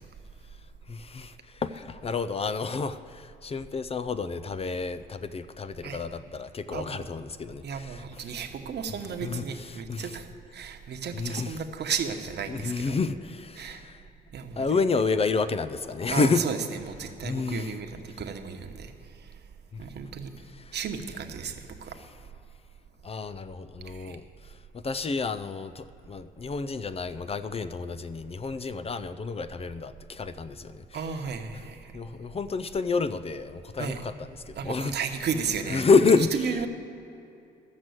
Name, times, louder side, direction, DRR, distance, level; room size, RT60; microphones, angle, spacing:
voice 1, 0.9-8.0 9.2-10.1 11.1-11.5 12.5-14.0 14.6-16.5 17.2-17.7 19.7-19.8 20.6-20.8 23.0-31.0 31.9-34.1 34.5-34.9 35.7-36.5, left 4 dB, 30° left, 12 dB, 0.4 m, -29 dB
voice 2, 6.7-7.1 7.6-10.3 10.5-13.0 13.6-13.8 14.3-14.8 16.1-18.9 19.8-20.3 20.7-21.9 23.9-24.2 30.9-31.9 33.8-34.0 34.5-35.9 36.2-36.7, right 6 dB, 60° right, 5 dB, 1.1 m, -34 dB
14.0 x 6.1 x 7.9 m, 2.7 s
cardioid pair, 90°, 20 cm